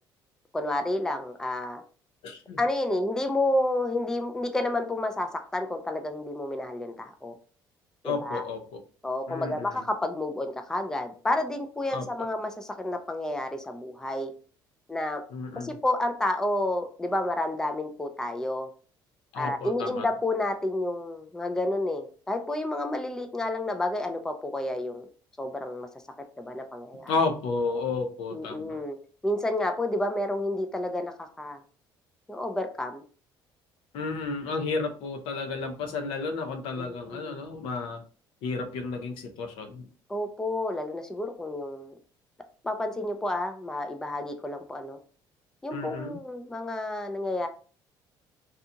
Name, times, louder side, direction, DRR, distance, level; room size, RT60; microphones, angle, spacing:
voice 1, 0.5-1.8 2.6-7.3 8.0-8.4 9.0-14.3 14.9-15.2 15.6-18.7 19.4-25.1 25.4-25.9 26.4-27.1 28.3-29.0 29.2-31.6 32.3-33.0 36.8-37.5 40.1-41.9 42.6-45.0 45.6-47.5, left 1 dB, 5° left, 6 dB, 0.4 m, -30 dB
voice 2, 2.2-2.6 8.0-8.8 9.3-9.8 11.9-12.0 15.3-15.8 19.3-20.1 27.1-28.8 33.9-38.0 38.4-39.9 45.7-46.2, left 4 dB, 80° left, 6 dB, 0.6 m, -32 dB
2.7 x 2.3 x 2.6 m, 0.40 s
cardioid pair, 100°, 9 cm